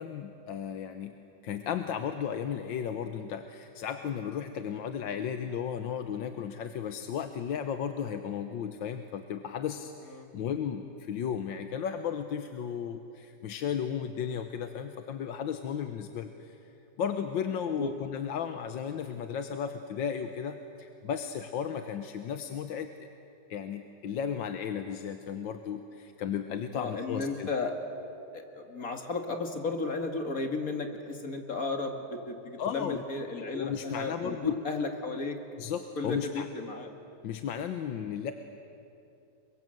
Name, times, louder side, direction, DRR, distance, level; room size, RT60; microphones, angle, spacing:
voice 1, 0.0-16.6 17.0-23.1 23.5-27.5 32.6-33.0 33.4-34.6 35.6-36.5 37.2-38.3, left 8 dB, 80° left, 7 dB, 1.7 m, -34 dB
voice 2, 26.7-27.7 28.3-35.4 36.0-36.9, left 3 dB, 45° left, 4 dB, 2.5 m, -34 dB
30.0 x 23.0 x 7.8 m, 2.8 s
omnidirectional pair, 2.1 m